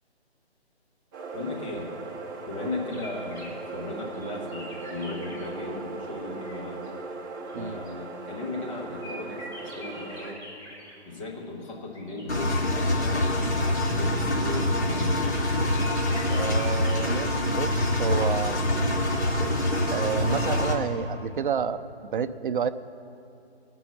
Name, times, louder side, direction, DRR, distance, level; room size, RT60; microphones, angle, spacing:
sound 1, 1.1-10.3, right 3 dB, 20° right, 0.9 m, -38 dB
voice 1, 1.3-1.9 2.5-6.8 7.5-10.4 11.1-15.3, left 2 dB, 30° left, -2 dB, 1.6 m, -37 dB
sound 2, 2.9-5.6 5.8-20.6, left 1 dB, 10° left, 1.7 m, -47 dB
Engine, 12.3-20.7, left 1 dB, 80° left, 2.8 m, -25 dB
voice 2, 16.3-18.6 19.9-21.8 22.1-22.7, right 7 dB, 50° right, 11 dB, 0.5 m, -30 dB
17.0 x 6.1 x 5.9 m, 2.8 s
hypercardioid pair, 150°, 33 cm